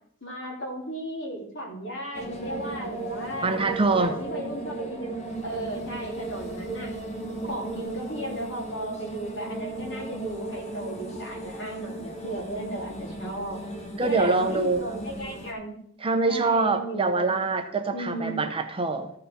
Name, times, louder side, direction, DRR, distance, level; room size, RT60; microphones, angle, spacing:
voice 1, 0.2-3.6 4.0-5.2 5.4-6.9 7.4-13.6 14.0-15.8 16.3-17.4 17.9-18.4, right 1 dB, 55° left, -1 dB, 2.8 m, -35 dB
sound 1, 2.1-15.5, right 2 dB, 30° left, 1.2 m, -36 dB
voice 2, 3.4-4.1 14.0-14.8 16.0-19.1, right 3 dB, 25° right, 6 dB, 0.7 m, -24 dB
14.0 x 4.8 x 5.1 m, 0.69 s
head